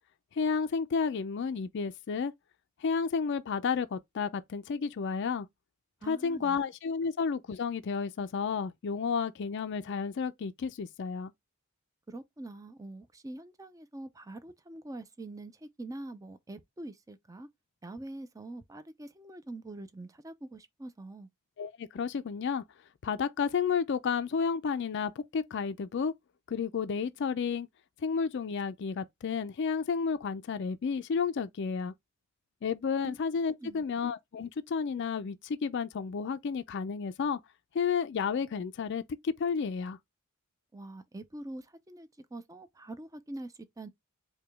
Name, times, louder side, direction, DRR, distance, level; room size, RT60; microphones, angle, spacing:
voice 1, 0.4-2.3 2.8-5.5 6.1-11.3 21.6-22.6 23.0-26.1 26.5-27.7 28.0-31.9 32.6-37.4 37.7-40.0, left 5 dB, 55° left, 0.4 m, -31 dB
voice 2, 6.0-6.6 12.1-17.5 17.8-21.3 33.0-33.2 33.6-33.8 40.7-43.9, right 2 dB, 15° right, 0.4 m, -44 dB
4.8 x 2.2 x 3.3 m
head